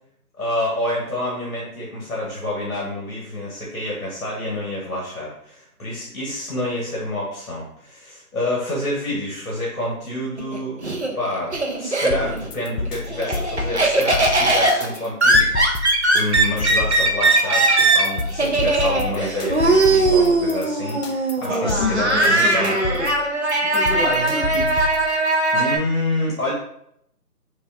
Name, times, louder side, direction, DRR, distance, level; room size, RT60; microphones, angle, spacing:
voice 1, 0.4-10.9 11.1-22.7 25.5-26.5, left 1 dB, 60° left, -4 dB, 1.2 m, -28 dB
Laughter, 10.4-12.5 12.9-25.8, right 2 dB, 50° right, 0.4 m, -19 dB
sound 1, 12.1-25.1, left 3 dB, 85° left, 0.7 m, -29 dB
voice 2, 21.5-23.1 23.6-24.9, left 1 dB, 30° left, -4 dB, 0.6 m, -27 dB
4.9 x 2.3 x 2.4 m, 0.72 s
figure-of-eight pair, 165°, 47 cm